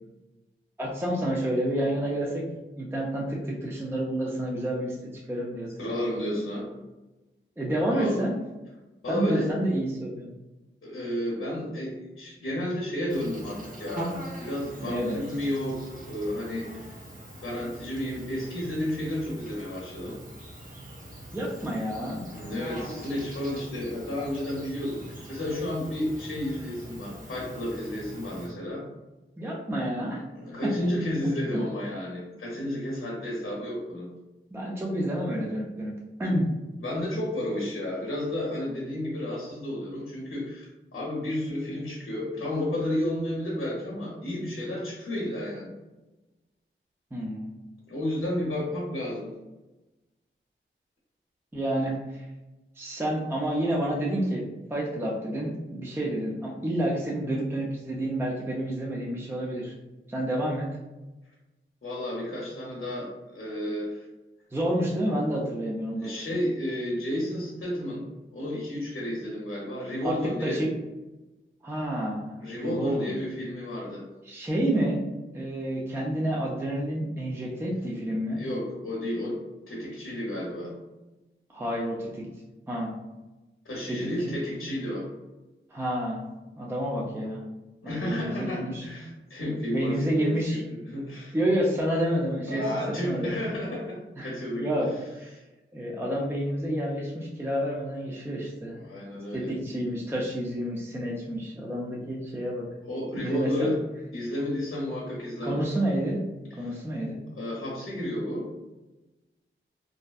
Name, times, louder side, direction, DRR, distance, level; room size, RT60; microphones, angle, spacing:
voice 1, 0.8-2.4 2.8-5.0 5.3-5.9 7.6-8.3 9.1-10.3 14.8-15.2 21.3-22.2 29.4-30.2 34.5-35.9 36.2-36.5 47.1-47.5 51.5-52.3 52.8-54.4 54.7-59.7 60.1-60.7 64.5-66.1 70.0-70.7 71.6-73.1 74.2-75.0 75.3-78.4 81.5-82.2 82.7-82.9 83.9-84.4 85.7-86.2 86.6-87.4 87.8-88.8 89.7-90.6 91.3-92.6 93.0-93.3 94.2-94.9 95.2-95.4 95.7-98.8 99.3-102.7 103.2-103.7 105.4-106.2 106.6-107.2, right 1 dB, 10° right, -3 dB, 0.4 m, -29 dB
voice 2, 5.8-6.7 7.9-8.2 9.0-9.5 10.8-17.0 17.4-20.2 22.2-28.8 30.4-34.1 36.8-45.7 47.9-49.3 61.8-64.1 66.0-70.6 72.4-74.1 78.3-79.4 79.7-80.7 83.6-85.1 87.8-91.4 92.5-94.7 98.3-98.4 98.7-99.5 102.9-103.8 104.1-105.7 106.5-106.8 107.3-108.5, left 1 dB, 70° left, -5 dB, 0.7 m, -32 dB
Insect, 13.1-28.5, right 1 dB, 40° right, 0.7 m, -42 dB
2.6 x 2.1 x 2.3 m, 1.1 s
wide cardioid pair, 60°, 21 cm